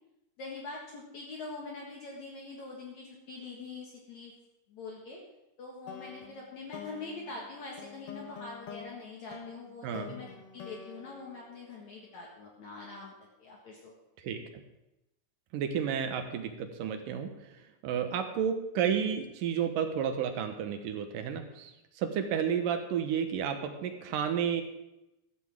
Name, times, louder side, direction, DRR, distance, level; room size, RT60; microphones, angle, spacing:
voice 1, 0.4-4.3 4.7-5.2 5.6-13.1 13.4-13.9, left 3 dB, 60° left, -2 dB, 2.7 m, -44 dB
sound 1, 5.9-12.3, left 7 dB, 75° left, 1.3 m, -47 dB
voice 2, 9.8-10.2 14.2-14.4 15.5-17.6 17.8-24.6, right 8 dB, 70° right, 7 dB, 2.6 m, -31 dB
15.0 x 13.5 x 3.6 m, 0.92 s
omnidirectional pair, 4.2 m